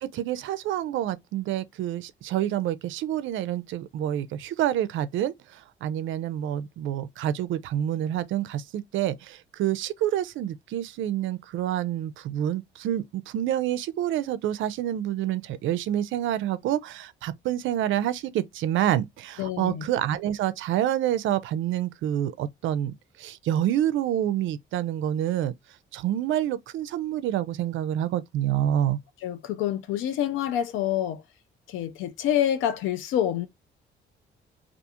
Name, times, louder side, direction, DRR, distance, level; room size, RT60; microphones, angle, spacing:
voice 1, 0.0-25.5 25.9-29.0, right 11 dB, 75° right, 0.4 m, -28 dB
voice 2, 19.4-19.8 29.2-31.2 31.7-33.5, left 10 dB, 85° left, 0.4 m, -27 dB
2.4 x 2.3 x 2.8 m
cardioid pair, 90°, 20 cm